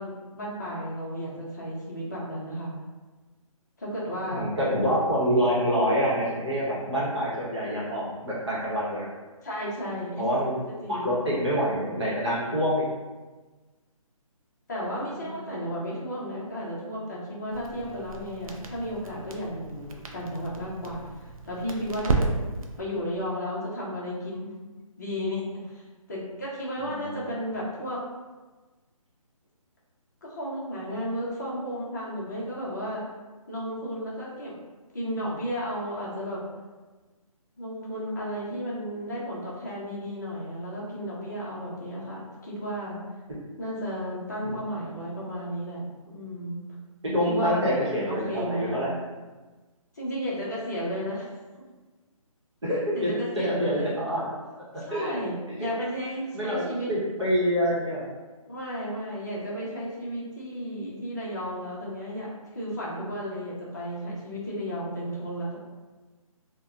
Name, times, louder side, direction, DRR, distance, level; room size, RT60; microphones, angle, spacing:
voice 1, 0.0-2.7 3.8-4.5 9.4-10.3 10.8-11.2 14.7-22.3 22.8-24.5 25.0-25.8 26.1-28.0 30.2-33.0 33.5-34.5 34.9-36.4 37.6-43.0 43.6-46.7 47.2-48.9 49.9-51.3 52.9-54.1 54.8-56.9 57.7-57.8 58.5-65.6, equal, 30° left, -6 dB, 0.5 m, -33 dB
voice 2, 4.3-9.1 10.2-10.6 10.9-12.8 15.2-15.6 26.8-27.3 44.4-44.6 47.0-48.9 52.6-54.2 54.9-55.2 55.6-55.7 56.3-58.1, equal, 50° right, -8 dB, 0.9 m, -26 dB
Crackle, 17.5-22.8, right 3 dB, 70° right, 0.4 m, -33 dB
2.6 x 2.1 x 2.3 m, 1.3 s
hypercardioid pair, 175°, 18 cm